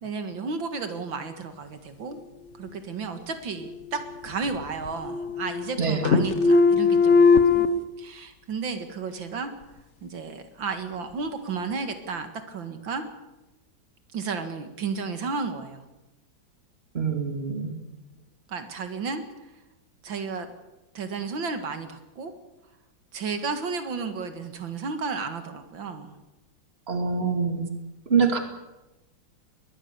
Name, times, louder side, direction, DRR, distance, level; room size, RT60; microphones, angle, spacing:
voice 1, 0.0-2.2 2.6-7.7 8.0-9.5 10.0-13.0 14.1-15.8 18.5-19.2 20.0-20.5 20.9-22.3 23.1-26.1, right 4 dB, 80° right, 8 dB, 2.5 m, -33 dB
sound 1, 3.6-4.6 4.9-5.8 6.0-7.7, left 4 dB, 40° left, 1.3 m, -20 dB
voice 2, 16.9-17.7 26.9-27.7 28.1-28.4, right 5 dB, 30° right, 5 dB, 2.6 m, -24 dB
21.5 x 20.5 x 6.9 m, 1.0 s
omnidirectional pair, 2.1 m